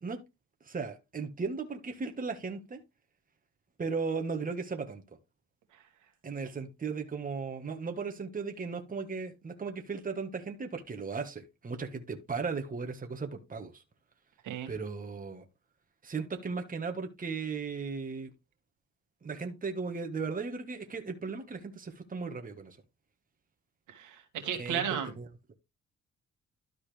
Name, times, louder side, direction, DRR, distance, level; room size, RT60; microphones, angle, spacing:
voice 1, 0.6-2.8 3.8-5.0 6.2-13.8 14.7-15.4 16.0-18.3 19.2-22.8 24.6-25.3, right 4 dB, 30° right, 1.5 m, -36 dB
voice 2, 23.9-25.1, right 8 dB, 85° right, 2.2 m, -34 dB
12.5 x 4.3 x 3.4 m
cardioid pair, 90°, 30 cm